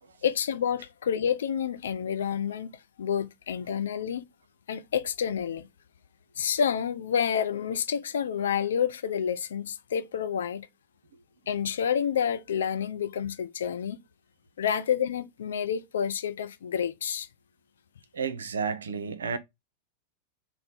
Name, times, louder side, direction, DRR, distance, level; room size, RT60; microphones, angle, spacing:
voice 1, 0.2-4.3 4.7-5.7 6.4-10.7 11.5-14.0 14.6-17.3, left 8 dB, 65° left, 0.3 m, -29 dB
voice 2, 18.1-19.4, right 6 dB, 70° right, 0.4 m, -32 dB
3.1 x 2.0 x 4.0 m
figure-of-eight pair, 90°, 0 cm